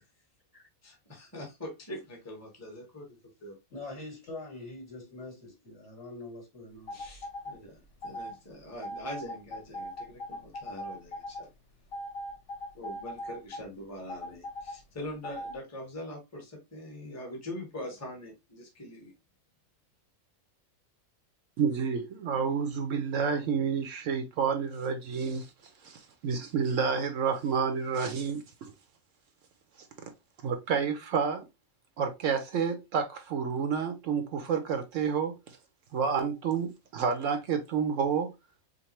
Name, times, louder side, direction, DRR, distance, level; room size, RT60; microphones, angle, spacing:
voice 1, 0.8-3.6 6.9-11.5 12.7-19.1, left 1 dB, 10° left, 1.2 m, -43 dB
voice 2, 3.7-7.0, left 2 dB, 55° left, 2.9 m, -44 dB
sound 1, 6.9-7.5 8.0-8.3 8.8-11.4 11.9-13.6 14.1-14.7 15.2-15.5, left 1 dB, 70° left, 1.7 m, -39 dB
voice 3, 21.6-25.5 25.8-28.7 30.4-31.5 32.0-35.6 35.9-38.3, right 6 dB, 65° right, 1.0 m, -29 dB
5.1 x 2.2 x 2.9 m
omnidirectional pair, 1.5 m